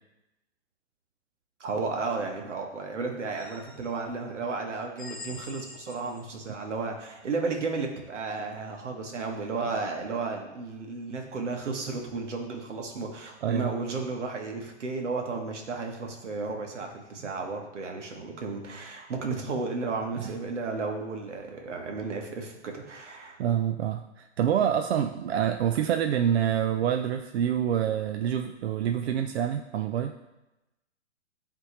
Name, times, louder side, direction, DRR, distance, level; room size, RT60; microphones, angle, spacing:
voice 1, 1.6-23.4, right 4 dB, 85° right, 2 dB, 1.5 m, -33 dB
sound 1, 3.4-4.2 5.0-6.4, left 3 dB, ahead, 0.9 m, -45 dB
voice 2, 23.4-30.1, right 9 dB, 65° right, 6 dB, 0.5 m, -26 dB
9.8 x 3.4 x 3.2 m, 0.97 s
hypercardioid pair, 140°, 35 cm